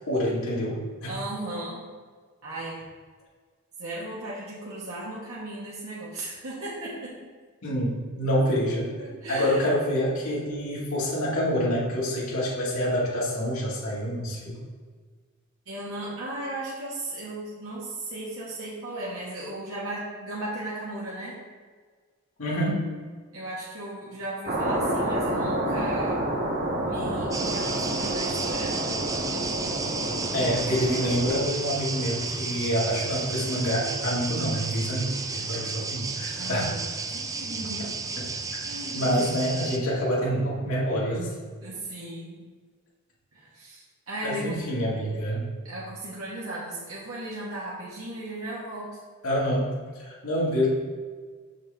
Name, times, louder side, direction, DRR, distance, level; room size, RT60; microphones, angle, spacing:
voice 1, 0.1-1.1 7.6-8.9 9.3-14.5 22.4-22.8 30.3-36.7 38.5-38.6 38.9-41.3 44.2-45.5 49.2-50.7, equal, 85° left, -6 dB, 2.0 m, -27 dB
voice 2, 1.1-1.8 2.4-2.8 3.8-7.1 9.0-9.7 15.6-21.4 23.3-26.3 26.9-28.9 36.3-37.9 38.6-39.2 41.6-42.4 43.3-44.6 45.6-49.0, right 1 dB, 85° right, -7 dB, 1.4 m, -36 dB
sound 1, 24.5-31.4, right 1 dB, 45° right, 1.1 m, -29 dB
sound 2, 27.3-39.8, right 4 dB, 15° right, 0.3 m, -33 dB
6.4 x 6.4 x 3.4 m, 1.5 s
head